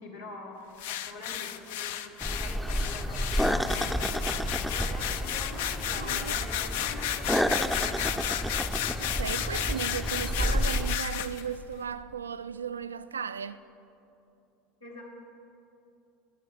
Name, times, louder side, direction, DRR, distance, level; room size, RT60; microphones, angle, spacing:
voice 1, 0.0-8.4 14.8-15.0, left 2 dB, 80° left, 1.8 m, -45 dB
sound 1, 0.8-11.4, left 11 dB, 60° left, 0.4 m, -33 dB
sound 2, 2.2-11.0, equal, ahead, 0.5 m, -30 dB
voice 2, 6.0-6.7 9.0-13.6, right 7 dB, 80° right, 0.3 m, -36 dB
15.5 x 5.9 x 6.6 m
figure-of-eight pair, 70°, 0 cm